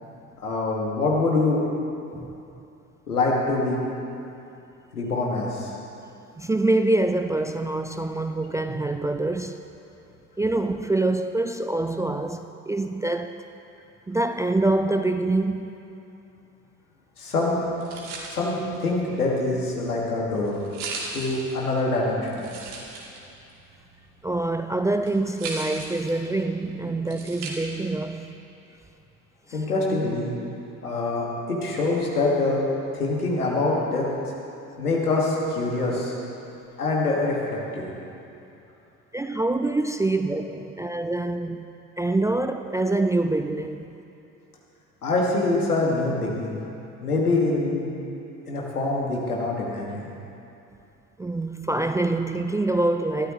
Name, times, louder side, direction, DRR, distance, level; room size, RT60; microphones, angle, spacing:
voice 1, 0.4-1.6 3.1-3.8 4.9-5.7 17.2-17.6 18.3-20.6 21.1-22.5 29.5-30.3 30.8-32.6 32.9-34.1 34.8-36.1 36.8-37.4 37.7-37.9 45.0-46.6 47.0-47.9 48.5-50.1, left 2 dB, 85° left, 2.3 m, -24 dB
voice 2, 6.4-9.6 10.4-13.4 14.1-15.8 24.2-28.3 29.5-29.7 39.1-41.7 42.0-43.9 51.2-53.3, right 2 dB, 10° right, 0.4 m, -25 dB
sound 1, 17.5-28.0, right 3 dB, 65° right, 2.5 m, -39 dB
21.0 x 13.0 x 3.3 m
figure-of-eight pair, 60°, 44 cm